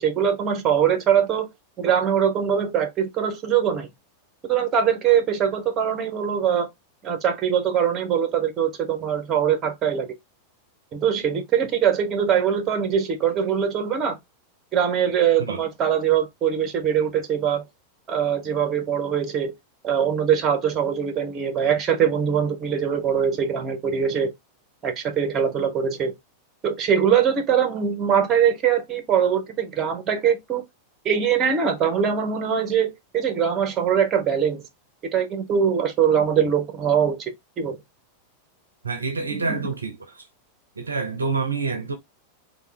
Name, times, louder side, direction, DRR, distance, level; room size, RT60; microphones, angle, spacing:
voice 1, 0.0-1.5 1.8-3.9 4.5-6.7 7.0-10.1 10.9-14.2 14.7-17.6 18.1-19.5 19.8-24.3 24.8-26.1 26.6-30.6 31.0-34.6 35.1-37.3 37.6-37.8 39.3-39.6, right 8 dB, 30° right, 1.0 m, -22 dB
voice 2, 38.8-40.2 40.8-42.0, right 4 dB, 75° right, 0.6 m, -27 dB
3.5 x 2.4 x 3.2 m
figure-of-eight pair, 90°, 0 cm